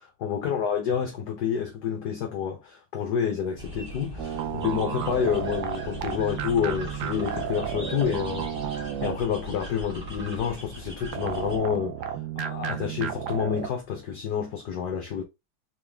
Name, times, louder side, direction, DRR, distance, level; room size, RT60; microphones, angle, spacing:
voice 1, 0.2-15.2, left 8 dB, 65° left, 1.1 m, -29 dB
sound 1, 3.6-11.6, equal, 30° right, 1.2 m, -40 dB
sound 2, 4.2-9.5 11.1-13.7, right 9 dB, 80° right, 0.9 m, -33 dB
3.9 x 3.5 x 3.3 m
omnidirectional pair, 2.4 m